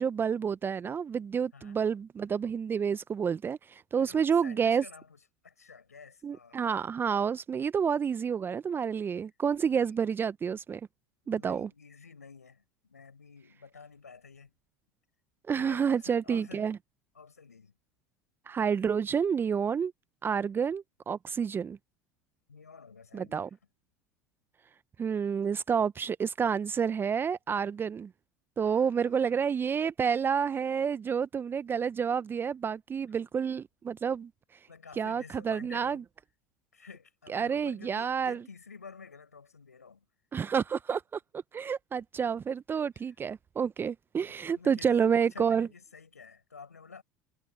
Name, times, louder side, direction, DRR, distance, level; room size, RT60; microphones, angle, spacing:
voice 1, 0.0-4.8 6.2-10.8 11.3-11.7 15.5-16.8 18.5-19.9 20.2-21.8 23.1-23.5 25.0-28.1 28.6-34.3 35.0-36.0 37.3-38.4 40.3-41.2 41.5-45.7, right 7 dB, 25° right, 0.8 m, -29 dB
voice 2, 4.0-6.6 9.7-10.0 11.2-14.5 15.5-16.8 17.1-17.7 22.5-23.5 28.6-29.4 34.7-36.0 36.7-40.0 44.3-47.0, left 5 dB, 90° left, 6.9 m, -51 dB
hypercardioid pair, 75°, 8 cm